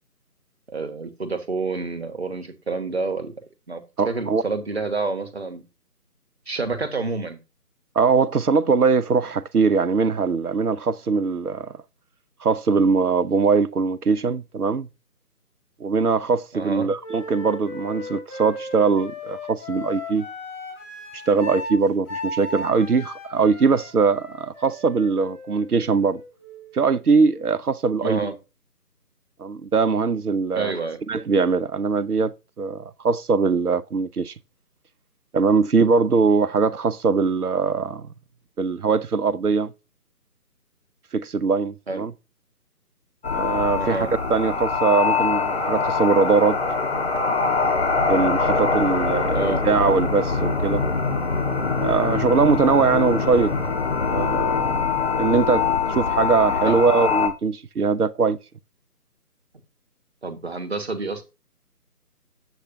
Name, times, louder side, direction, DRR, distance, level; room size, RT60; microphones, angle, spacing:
voice 1, 0.7-3.3 3.7-5.6 6.5-7.4 16.5-16.9 28.0-28.3 30.5-31.0 41.9-42.1 43.8-44.1 49.3-49.7 56.6-56.8 60.2-61.2, right 3 dB, 40° right, 1.2 m, -28 dB
voice 2, 4.0-4.4 8.0-11.7 12.4-14.9 15.8-20.3 21.3-26.2 26.7-28.3 29.4-30.7 31.1-34.3 35.3-38.1 38.6-39.7 41.1-42.1 43.3-46.6 48.0-50.8 51.8-53.6 54.1-54.8 55.2-58.4, right 5 dB, 70° right, 0.8 m, -21 dB
Wind instrument woodwind instrument, 17.0-26.8, left 2 dB, 15° left, 4.0 m, -36 dB
sound 1, 43.2-57.3, left 5 dB, 40° left, 1.6 m, -23 dB
8.3 x 8.0 x 2.7 m
figure-of-eight pair, 160°, 47 cm